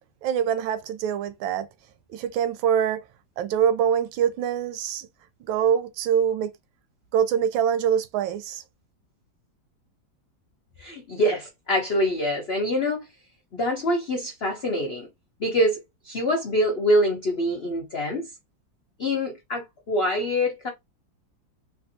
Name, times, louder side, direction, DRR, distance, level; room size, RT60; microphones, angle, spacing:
voice 1, 0.2-1.7 2.1-3.0 3.4-5.1 5.4-6.5 7.1-8.6, right 8 dB, 80° right, 1.3 m, -24 dB
voice 2, 10.8-13.1 13.5-15.1 15.4-15.8 16.0-18.3 19.0-20.7, equal, 80° left, 0.5 m, -25 dB
3.3 x 2.6 x 2.6 m
omnidirectional pair, 2.2 m